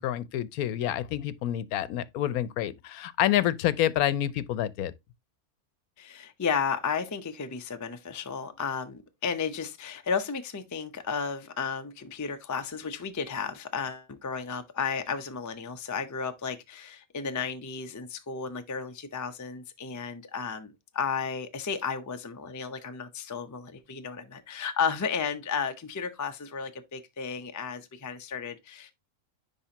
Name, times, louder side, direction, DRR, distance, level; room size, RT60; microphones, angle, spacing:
voice 1, 0.0-4.9, left 12 dB, 80° left, 1.1 m, -28 dB
voice 2, 6.0-28.9, left 6 dB, 30° left, 0.3 m, -33 dB
10.0 x 3.5 x 2.8 m
omnidirectional pair, 1.5 m